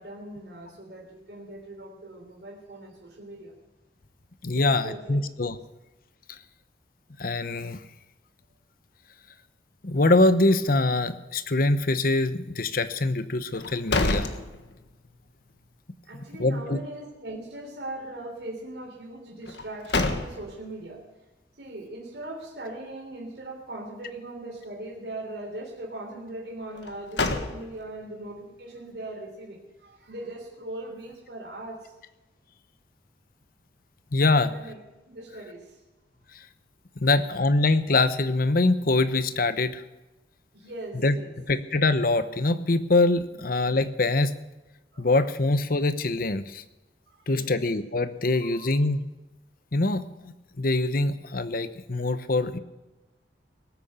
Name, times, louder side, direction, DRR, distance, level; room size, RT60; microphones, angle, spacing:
voice 1, 0.0-3.6 4.5-5.2 16.0-21.0 21.6-31.9 34.4-34.8 35.1-35.8 36.9-37.1 40.5-41.3 44.9-45.1 47.1-47.5 48.4-48.7, right 1 dB, 65° right, -2 dB, 3.6 m, -40 dB
voice 2, 4.4-5.6 6.3-6.4 7.2-7.8 9.8-14.3 16.1-16.8 34.1-34.5 36.3-36.4 37.0-39.8 41.0-41.2 41.5-44.3 45.0-46.6 47.3-49.1 49.7-52.6, left 2 dB, 55° left, 13 dB, 1.0 m, -24 dB
sound 1, 13.5-15.2 15.5-15.6 19.4-20.7 26.7-28.0, left 2 dB, 80° left, 1.5 m, -29 dB
19.5 x 8.8 x 6.8 m, 1.1 s
head